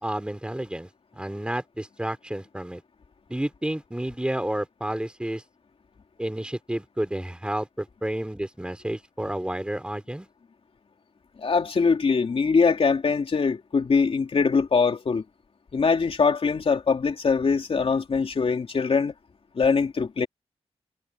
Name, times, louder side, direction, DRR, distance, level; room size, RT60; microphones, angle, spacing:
voice 1, 0.0-0.9 1.2-2.8 3.3-5.4 6.2-10.3, right 1 dB, 10° right, 3.9 m, -30 dB
voice 2, 11.4-15.2 15.7-19.1 19.5-20.3, left 5 dB, 55° left, 2.9 m, -22 dB
wide cardioid pair, 85°, 11 cm